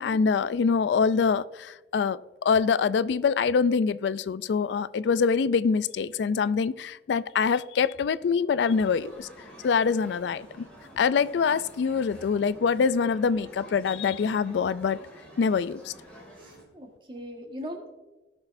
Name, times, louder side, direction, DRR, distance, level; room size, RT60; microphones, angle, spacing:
voice 1, 0.0-9.3 9.6-10.7 11.0-15.0 15.4-15.9, left 5 dB, 80° left, 16 dB, 0.3 m, -25 dB
sound 1, 8.7-16.6, equal, 5° left, 2.3 m, -49 dB
voice 2, 16.3-17.9, equal, 30° right, 2 dB, 1.6 m, -40 dB
18.0 x 6.2 x 2.6 m, 1.1 s
head